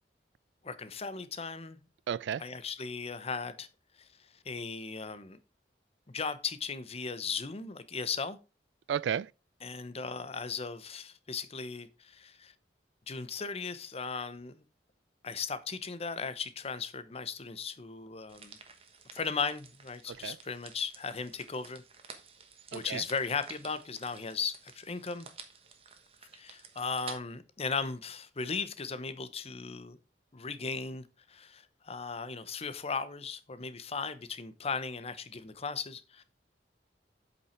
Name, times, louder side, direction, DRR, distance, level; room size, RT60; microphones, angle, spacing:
voice 1, 0.6-1.8 2.4-3.7 4.0-4.1 4.4-5.4 6.1-8.4 9.6-12.5 13.1-14.6 15.2-18.6 19.1-21.8 22.7-25.3 26.3-30.0 30.3-36.2, left 5 dB, 35° left, 0.8 m, -37 dB
voice 2, 2.1-2.4 8.9-9.3 20.1-20.4 22.7-23.0, right 8 dB, 85° right, 0.3 m, -33 dB
sound 1, 18.3-27.2, right 5 dB, 35° right, 1.2 m, -52 dB
8.1 x 5.7 x 4.4 m
head